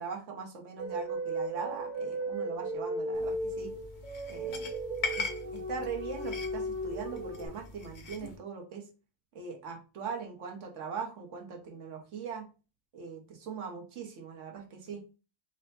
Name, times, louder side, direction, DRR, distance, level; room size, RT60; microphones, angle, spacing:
voice 1, 0.0-3.8 4.3-4.7 5.1-5.2 5.5-8.9 9.3-12.5 12.9-15.0, right 5 dB, 60° right, 3 dB, 1.0 m, -40 dB
sound 1, 0.8-7.5, right 1 dB, 30° right, 1.2 m, -36 dB
sound 2, 3.1-8.4, left 4 dB, 75° left, 0.4 m, -41 dB
4.1 x 2.1 x 4.1 m, 0.33 s
omnidirectional pair, 1.7 m